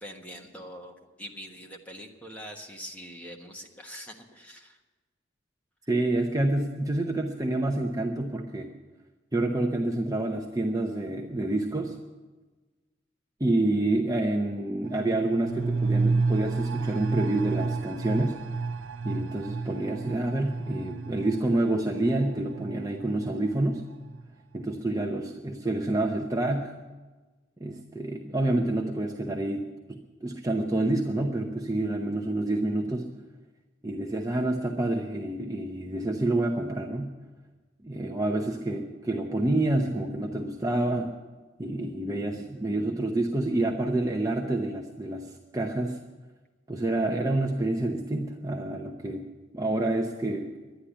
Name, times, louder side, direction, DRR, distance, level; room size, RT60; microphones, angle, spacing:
voice 1, 0.0-4.8, equal, 5° left, 1 dB, 1.3 m, -43 dB
voice 2, 5.9-8.7 9.3-12.0 13.4-18.4 19.0-23.8 24.5-26.7 27.6-33.1 33.8-37.1 37.8-41.1 41.6-46.0 46.7-49.2 49.5-50.5, right 2 dB, 20° right, 2 dB, 0.8 m, -28 dB
sound 1, 14.8-24.3 24.6-24.7, right 3 dB, 75° right, 0.6 m, -31 dB
11.5 x 9.9 x 10.0 m, 1.3 s
head